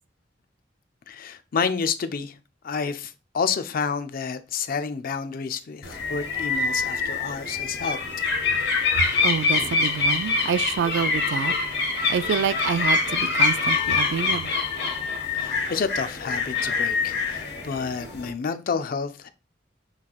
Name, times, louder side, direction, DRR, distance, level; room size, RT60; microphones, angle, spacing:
voice 1, 1.1-2.3 2.6-8.0 15.3-19.3, left 5 dB, 50° left, 0.4 m, -29 dB
sound 1, 5.8-18.3, left 4 dB, 65° left, 0.9 m, -25 dB
voice 2, 9.0-11.5 11.8-14.5, right 7 dB, 75° right, 0.3 m, -27 dB
5.9 x 3.2 x 2.3 m
head